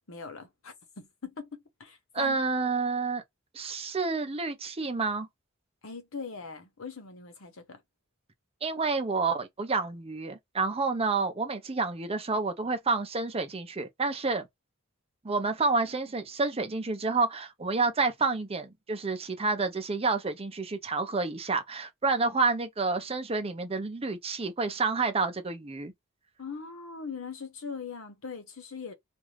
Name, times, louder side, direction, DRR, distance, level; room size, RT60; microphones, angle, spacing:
voice 1, 0.1-2.4 5.8-7.8 26.4-28.9, left 5 dB, 70° left, 0.9 m, -41 dB
voice 2, 2.1-3.2 3.5-5.3 8.6-14.5 15.2-25.9, right 3 dB, 30° right, 0.6 m, -29 dB
2.6 x 2.2 x 3.1 m
head